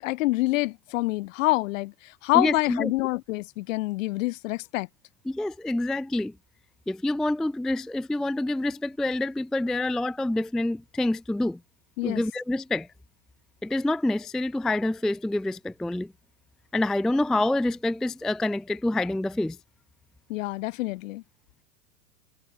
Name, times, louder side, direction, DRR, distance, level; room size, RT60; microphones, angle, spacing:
voice 1, 0.0-4.9 12.0-12.2 20.3-21.2, left 20 dB, 50° left, 2.7 m, -27 dB
voice 2, 2.3-2.9 5.3-6.3 6.9-11.6 12.0-12.9 13.6-16.1 16.7-19.6, left 2 dB, ahead, 0.4 m, -27 dB
supercardioid pair, 155°, 49 cm